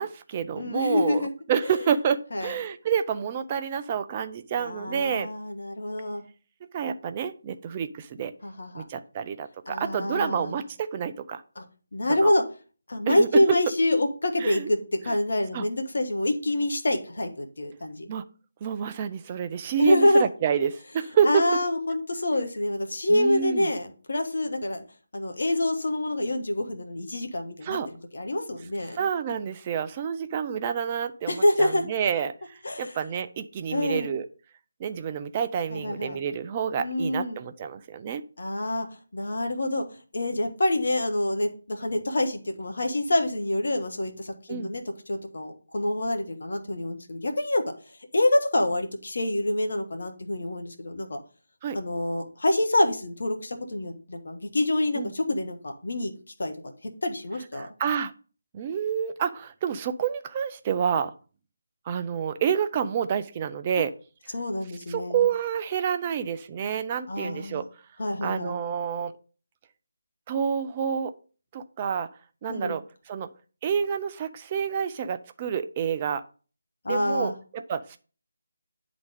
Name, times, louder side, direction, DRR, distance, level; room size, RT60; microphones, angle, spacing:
voice 1, 0.0-5.3 6.7-8.3 8.7-11.4 12.1-12.3 13.1-13.6 14.4-14.7 15.1-15.2 15.5-15.7 18.1-18.2 18.6-21.5 23.1-23.7 27.6-27.9 28.9-34.3 34.8-38.2 44.5-44.7 51.6-51.8 54.9-55.1 57.6-58.1 58.5-61.1 61.9-63.9 64.9-67.7 68.2-69.1 70.3-71.1 71.5-72.1 72.4-73.3 73.6-76.2 76.9-78.0, right 7 dB, 25° right, 10 dB, 0.6 m, -28 dB
voice 2, 0.6-1.3 1.6-1.9 2.3-2.5 4.6-6.2 8.4-8.8 9.7-10.6 11.6-11.7 11.9-12.4 12.9-18.1 19.8-20.3 21.2-24.8 25.1-27.8 28.1-29.0 31.3-31.8 32.6-33.0 33.7-34.1 35.7-36.2 36.8-37.4 38.4-38.9 39.1-47.6 48.1-51.2 51.7-56.1 56.4-56.5 56.8-57.7 64.3-65.2 67.1-67.6 68.0-68.6 72.5-72.8 76.8-77.3, left 1 dB, 55° left, 5 dB, 1.4 m, -26 dB
9.5 x 4.0 x 5.1 m, 0.38 s
figure-of-eight pair, 155°, 0 cm